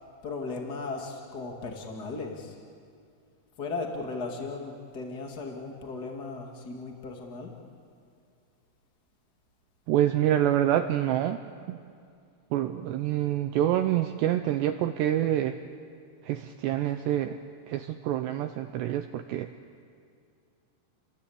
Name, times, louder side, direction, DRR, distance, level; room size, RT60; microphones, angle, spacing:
voice 1, 0.2-2.5 3.6-7.5, left 3 dB, 75° left, 1 dB, 0.9 m, -36 dB
voice 2, 9.9-11.4 11.7-11.8 12.5-15.6 16.2-17.4 17.7-19.5, right 12 dB, 90° right, 8 dB, 2.4 m, -26 dB
30.0 x 22.0 x 8.6 m, 2.4 s
omnidirectional pair, 6.0 m